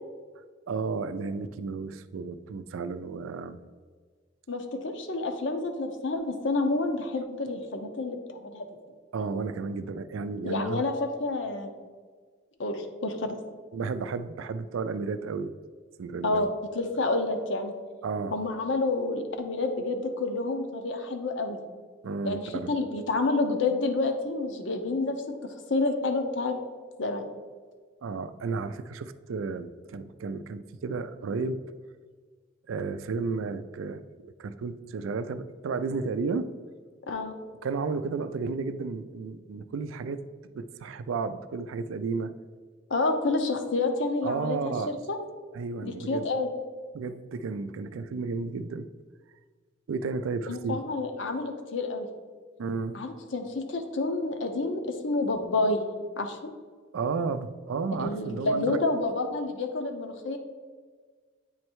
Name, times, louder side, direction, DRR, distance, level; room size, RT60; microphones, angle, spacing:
voice 1, 0.7-3.6 9.1-10.9 13.7-15.5 16.0-16.5 18.0-18.4 22.0-22.7 28.0-31.6 32.7-36.5 37.6-40.2 40.5-42.3 44.2-45.0 45.5-46.3 46.9-48.9 49.9-50.8 52.6-53.0 56.9-58.8, right 4 dB, 90° right, 12 dB, 0.4 m, -32 dB
voice 2, 4.5-8.8 10.4-11.7 12.6-13.3 16.2-16.5 16.7-17.7 18.3-21.6 22.2-26.6 27.0-27.3 37.1-37.3 42.9-45.2 45.8-46.5 50.5-52.1 52.9-55.8 56.2-56.5 58.0-60.4, left 3 dB, 65° left, 6 dB, 0.7 m, -29 dB
8.7 x 3.2 x 4.5 m, 1.5 s
head